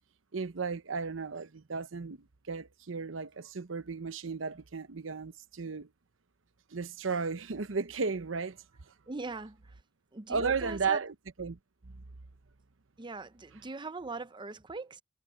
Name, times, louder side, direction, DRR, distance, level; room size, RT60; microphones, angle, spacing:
voice 1, 0.3-5.9 6.7-8.9 10.3-11.6 11.8-11.9, right 5 dB, 85° right, 0.8 m, -34 dB
voice 2, 9.1-9.8 10.1-11.0 13.0-15.0, right 3 dB, 25° right, 0.7 m, -41 dB
head